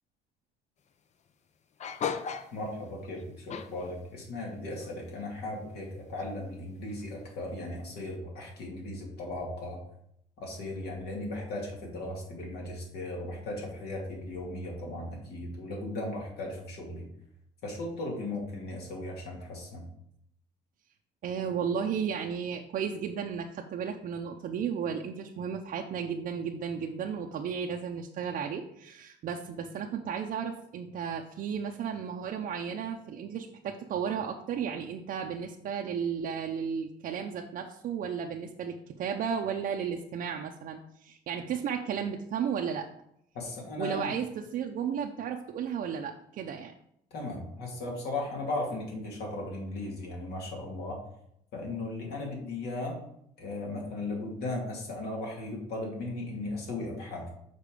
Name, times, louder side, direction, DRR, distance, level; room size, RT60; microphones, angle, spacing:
sound 1, 1.8-2.7 3.0-3.2 3.5-4.1 4.7-5.2 5.6-5.8 6.2-6.3 6.8-7.0, left 7 dB, 45° left, 0.6 m, -36 dB
voice 1, 2.5-9.8 10.4-17.1 17.6-19.8 43.3-44.2 47.1-51.0 51.5-53.0 53.4-57.3, left 2 dB, 70° left, -1 dB, 2.6 m, -37 dB
voice 2, 21.2-42.9 43.8-46.7, right 7 dB, 55° right, 1 dB, 0.6 m, -34 dB
6.8 x 4.4 x 4.9 m, 0.75 s
cardioid pair, 110°, 17 cm